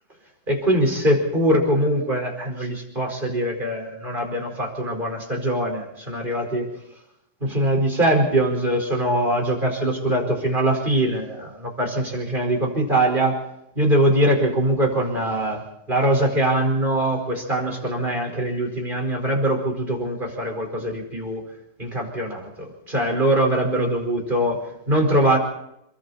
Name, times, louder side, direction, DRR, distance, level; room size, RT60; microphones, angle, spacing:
voice 1, 0.5-6.7 7.4-13.4 13.8-15.6 15.9-21.4 21.8-25.4, right 1 dB, 25° right, 1 dB, 5.2 m, -22 dB
29.0 x 21.0 x 4.3 m, 0.82 s
omnidirectional pair, 2.2 m